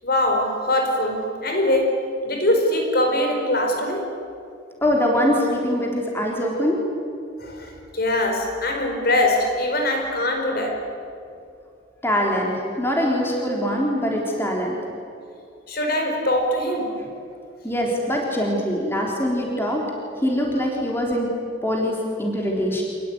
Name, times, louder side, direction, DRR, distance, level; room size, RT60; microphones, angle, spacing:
voice 1, 0.0-4.1 7.4-10.8 15.7-17.0, left 1 dB, 50° left, 3 dB, 4.8 m, -22 dB
voice 2, 4.8-6.8 12.0-14.8 17.6-19.9 20.2-21.3 21.6-22.8, equal, 10° left, -1 dB, 3.8 m, -23 dB
27.0 x 20.5 x 9.6 m, 2.5 s
head